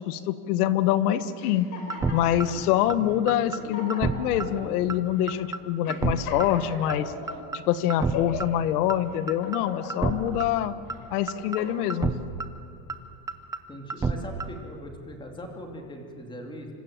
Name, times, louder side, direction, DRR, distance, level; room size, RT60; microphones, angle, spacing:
voice 1, 0.0-1.7 2.1-7.1 7.5-10.7 11.1-12.1, left 11 dB, 85° left, 13 dB, 1.5 m, -25 dB
sound 1, 1.4-2.6 3.2-3.3 3.6-4.6 5.2-5.4 5.8-7.4 7.9-8.6 9.1-10.4 10.9-11.9, left 4 dB, 45° left, 5.2 m, -38 dB
sound 2, 1.9-2.1 2.4-2.5 2.9-3.0 3.3-3.6 3.9-4.1 4.4-4.5 4.9-5.0 5.3-5.6 5.9-6.1 6.4-6.5 6.9-7.0 7.3-7.6 7.9-8.1 8.4-8.5 8.9-9.0 9.3-9.6 9.9-10.1 10.4-10.5 10.9-11.0 11.3-11.6 11.9-12.1 12.4-12.5 12.9-13.0 13.3-13.6 13.9-14.1 14.4-14.5, right 4 dB, 10° right, 0.6 m, -27 dB
voice 2, 13.7-16.7, equal, 10° left, 2 dB, 2.7 m, -40 dB
26.5 x 25.5 x 7.5 m, 2.6 s
cardioid pair, 170°, 44 cm